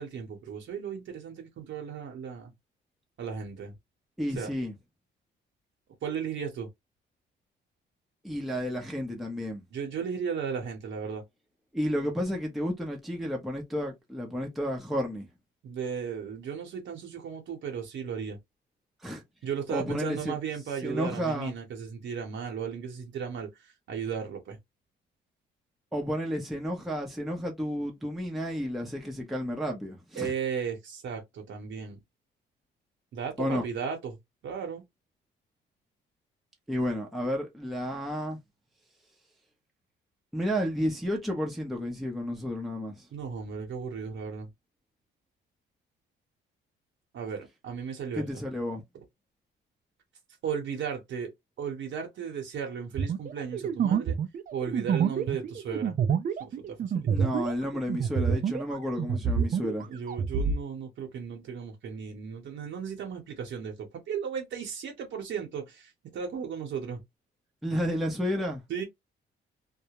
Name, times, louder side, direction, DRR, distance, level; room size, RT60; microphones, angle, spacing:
voice 1, 0.0-2.5 3.2-3.7 4.4-4.5 6.0-6.7 9.7-11.2 15.6-18.4 19.4-23.5 23.9-24.6 30.1-32.0 33.1-34.2 34.4-34.8 43.1-44.5 47.1-48.2 50.4-51.3 51.6-54.2 54.5-56.0 56.4-57.1 59.9-67.0 68.7-68.8, right 7 dB, 70° right, 0.9 m, -35 dB
voice 2, 4.2-4.7 8.2-9.6 11.7-15.3 19.0-19.2 19.7-20.4 20.8-21.5 25.9-30.3 33.4-33.6 36.7-38.4 40.3-43.1 48.1-48.8 57.1-59.9 67.6-68.6, equal, ahead, 0.7 m, -31 dB
sound 1, 53.0-58.7 59.0-60.6, right 7 dB, 45° right, 0.4 m, -27 dB
2.3 x 2.0 x 2.9 m
cardioid pair, 90°, 20 cm